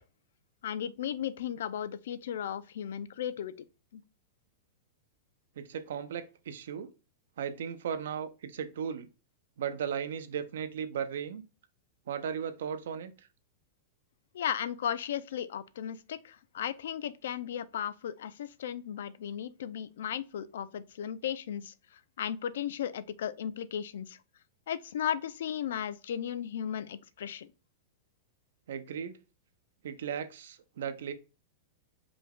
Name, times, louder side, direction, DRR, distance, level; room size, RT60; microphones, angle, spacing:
voice 1, 0.6-3.5 3.9-4.0 14.3-24.2 24.7-27.5, left 9 dB, 70° left, 0.4 m, -35 dB
voice 2, 5.6-6.9 7.4-9.1 9.6-11.4 12.1-13.1 28.7-29.1 29.8-31.1, right 8 dB, 75° right, 0.7 m, -36 dB
5.1 x 2.3 x 3.6 m
supercardioid pair, 175°, 0 cm